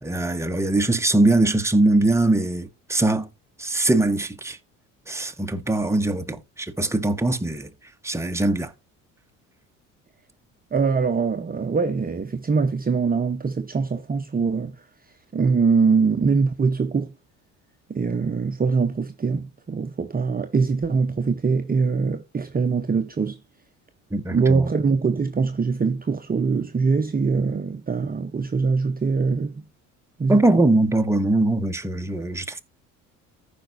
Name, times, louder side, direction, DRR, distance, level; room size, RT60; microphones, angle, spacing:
voice 1, 0.0-3.3 3.6-4.6 5.1-7.7 8.0-8.7 24.1-24.7 30.3-32.6, right 2 dB, 5° right, 1.2 m, -21 dB
voice 2, 10.7-14.8 15.3-17.1 17.9-23.4 24.3-29.6 30.2-30.6, right 5 dB, 25° right, 0.9 m, -23 dB
14.5 x 5.2 x 2.6 m
hypercardioid pair, 65°, 38 cm